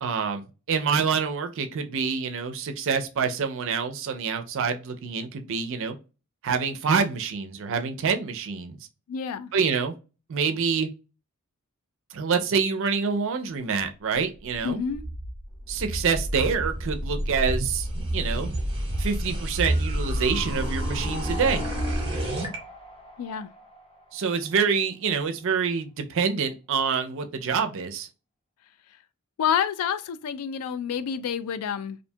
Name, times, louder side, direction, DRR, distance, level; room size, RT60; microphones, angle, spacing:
voice 1, 0.0-6.0 6.4-8.8 9.5-9.9 10.3-10.9 12.1-14.8 15.7-17.9 18.1-18.5 19.0-21.7 24.1-28.1, right 6 dB, 60° right, 0.4 m, -26 dB
voice 2, 9.1-9.5 14.6-15.0 23.2-23.5 28.9-29.0 29.4-32.0, left 8 dB, 75° left, 0.3 m, -28 dB
sound 1, 14.8-22.6, right 1 dB, 25° right, 0.8 m, -29 dB
sound 2, 19.6-24.8 25.1-25.2, equal, 25° left, 0.7 m, -39 dB
2.5 x 2.2 x 2.6 m
head